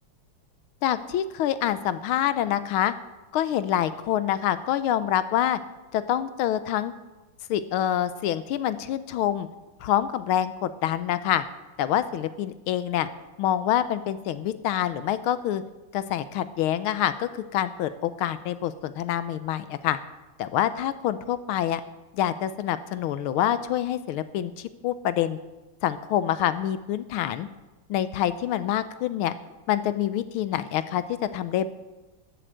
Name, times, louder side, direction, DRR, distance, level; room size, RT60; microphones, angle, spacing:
voice 1, 0.8-2.9 3.3-5.6 5.9-6.9 7.5-9.5 9.8-11.4 11.8-13.1 13.4-15.6 15.9-20.0 20.4-21.8 22.1-25.4 25.8-27.5 27.9-29.3 29.7-31.0 31.3-31.7, left 11 dB, 75° left, 13 dB, 1.5 m, -26 dB
13.0 x 7.8 x 7.7 m, 1.1 s
omnidirectional pair, 2.4 m